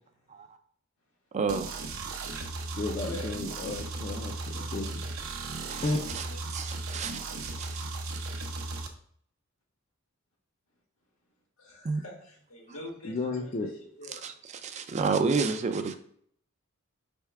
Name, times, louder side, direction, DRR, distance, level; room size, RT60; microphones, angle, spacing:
voice 1, 1.3-1.7 5.6-5.8 6.1-6.2 6.5-7.9 11.8-12.0 14.1-15.9, right 4 dB, 35° right, 8 dB, 0.3 m, -30 dB
sound 1, 1.5-8.9, right 3 dB, 75° right, 0.7 m, -36 dB
voice 2, 2.8-5.0 5.8-6.3 13.0-13.7, left 2 dB, 35° left, 2 dB, 0.4 m, -33 dB
voice 3, 4.5-4.9 5.8-6.4 11.6-13.7 14.0-14.2, left 1 dB, 80° left, -1 dB, 1.5 m, -45 dB
3.5 x 3.2 x 4.6 m, 0.63 s
head